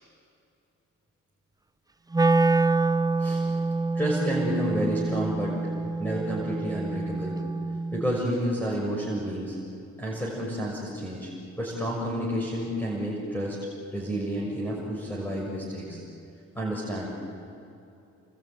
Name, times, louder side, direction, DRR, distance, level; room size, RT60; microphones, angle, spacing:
Wind instrument woodwind instrument, 2.1-8.2, right 3 dB, 10° right, 0.7 m, -26 dB
voice 1, 3.2-3.6 3.9-5.7 6.0-7.4 7.9-9.6 10.0-11.3 11.6-13.6 13.9-16.0 16.5-17.1, equal, 5° left, -3 dB, 6.4 m, -30 dB
28.5 x 22.0 x 9.0 m, 2.7 s
cardioid pair, 90°, 30 cm